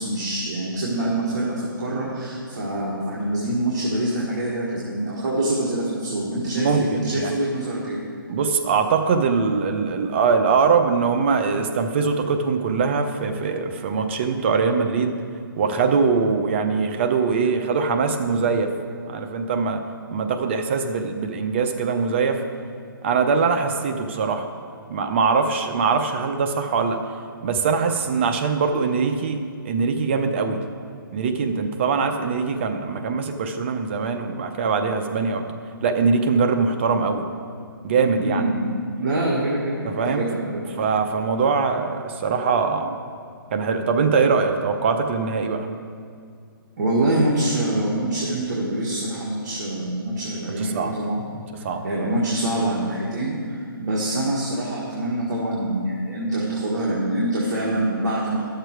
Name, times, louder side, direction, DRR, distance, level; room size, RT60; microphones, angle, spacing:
voice 1, 0.0-8.0 38.2-38.7 39.0-40.6 46.8-51.2 51.8-58.5, right 1 dB, 50° right, -5 dB, 1.6 m, -25 dB
voice 2, 6.6-7.3 8.3-15.2 15.6-18.7 19.1-19.8 20.1-22.4 23.0-24.5 24.9-27.0 27.4-30.6 31.1-35.4 35.8-37.3 37.8-38.4 39.8-40.3 40.8-43.0 43.5-45.7 50.6-51.0 51.6-51.8, right 5 dB, 30° right, 6 dB, 0.6 m, -22 dB
11.5 x 6.7 x 4.6 m, 2.2 s
hypercardioid pair, 160°, 12 cm